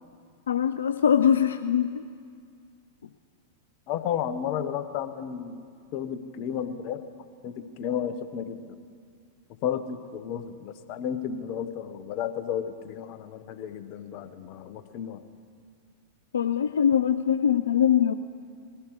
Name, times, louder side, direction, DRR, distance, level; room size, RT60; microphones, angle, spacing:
voice 1, 0.5-2.0 16.3-18.1, left 9 dB, 80° left, 9 dB, 0.4 m, -22 dB
voice 2, 3.9-5.6 5.9-7.0 7.4-8.8 9.6-15.2, left 9 dB, 50° left, 10 dB, 1.0 m, -32 dB
21.0 x 16.0 x 3.2 m, 2.2 s
hypercardioid pair, 100°, 0 cm